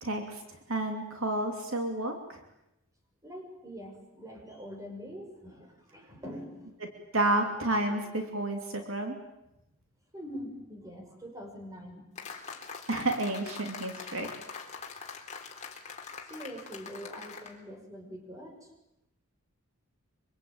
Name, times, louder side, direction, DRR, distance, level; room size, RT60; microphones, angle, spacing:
voice 1, 0.0-0.4 0.7-2.4 7.1-9.2 12.9-14.3, right 2 dB, 60° right, 4 dB, 2.9 m, -30 dB
voice 2, 3.2-6.8 7.4-7.5 7.8-8.0 10.1-12.1 15.4-15.6 16.1-18.7, equal, 15° right, 3 dB, 6.0 m, -44 dB
sound 1, 12.2-17.5, left 5 dB, 30° left, 3.8 m, -43 dB
25.5 x 25.0 x 9.0 m, 0.89 s
head